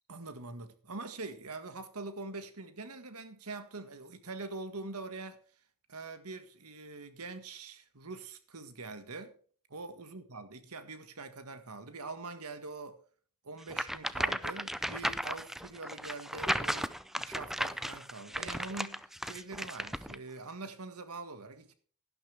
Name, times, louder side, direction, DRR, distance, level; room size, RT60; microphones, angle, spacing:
voice 1, 0.1-5.4 5.9-9.3 9.7-13.0 13.4-21.7, right 3 dB, 80° right, 1.7 m, -44 dB
sound 1, 13.7-20.2, equal, ahead, 0.4 m, -35 dB
11.5 x 11.5 x 3.4 m
head